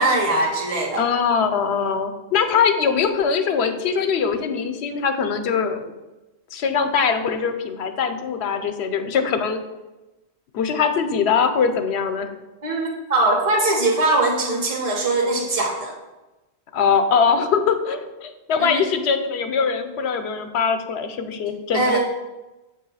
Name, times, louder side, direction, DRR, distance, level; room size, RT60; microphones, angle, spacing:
voice 1, 0.0-1.0 12.6-15.9 18.6-18.8 21.7-22.0, right 2 dB, 35° right, -1 dB, 1.2 m, -21 dB
voice 2, 1.0-5.9 6.5-9.6 10.5-12.3 16.7-22.0, left 6 dB, 80° left, 8 dB, 0.9 m, -22 dB
7.6 x 2.8 x 5.5 m, 1.1 s
omnidirectional pair, 1.1 m